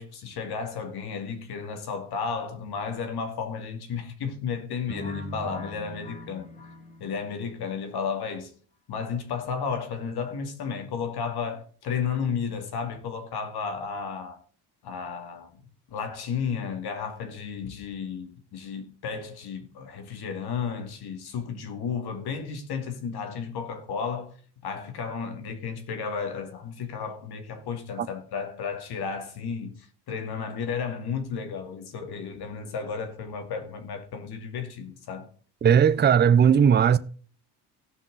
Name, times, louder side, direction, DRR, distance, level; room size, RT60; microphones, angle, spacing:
voice 1, 0.0-6.5 7.0-8.5 8.9-14.4 14.8-15.5 15.9-24.3 24.6-35.3, left 6 dB, 60° left, 2.3 m, -33 dB
sound 1, 4.9-7.8, right 1 dB, 20° left, 2.4 m, -40 dB
voice 2, 35.6-37.0, right 8 dB, 25° right, 0.6 m, -18 dB
17.0 x 5.9 x 4.0 m
cardioid pair, 130°, 43 cm